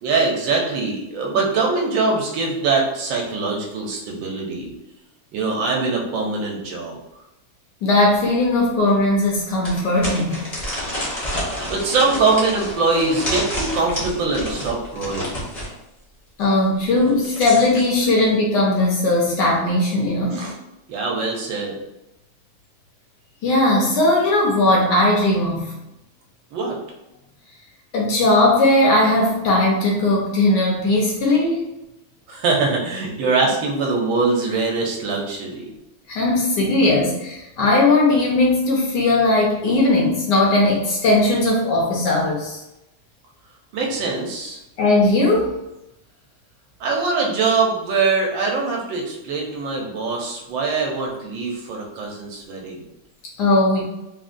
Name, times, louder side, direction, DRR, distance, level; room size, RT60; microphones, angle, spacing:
voice 1, 0.0-4.7 5.3-7.0 11.7-15.4 20.3-20.5 20.9-21.8 26.5-26.8 32.3-35.7 43.7-44.6 46.8-52.8, right 4 dB, 75° right, 0 dB, 1.3 m, -22 dB
voice 2, 7.8-10.5 16.4-20.5 23.4-25.8 27.9-31.7 36.1-42.6 44.8-45.5 53.4-53.8, left 2 dB, 70° left, -2 dB, 1.1 m, -18 dB
sound 1, 8.1-8.2 8.7-8.8 9.6-15.7 16.9-17.9, equal, 40° left, 0.5 m, -29 dB
3.6 x 2.2 x 2.4 m, 0.90 s
omnidirectional pair, 2.1 m